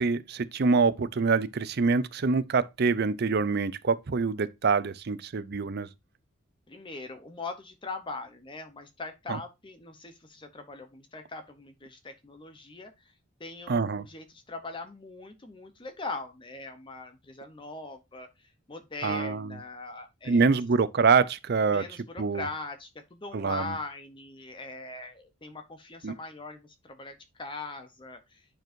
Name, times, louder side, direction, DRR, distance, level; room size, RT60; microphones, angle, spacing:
voice 1, 0.0-5.9 9.3-9.4 13.7-14.1 19.0-19.6 20.3-21.8 22.2-22.4 23.3-23.7 26.0-26.1, right 4 dB, 50° right, 0.5 m, -25 dB
voice 2, 6.7-12.9 13.4-20.5 21.7-28.4, left 3 dB, 25° left, 0.7 m, -41 dB
10.0 x 4.5 x 2.6 m
head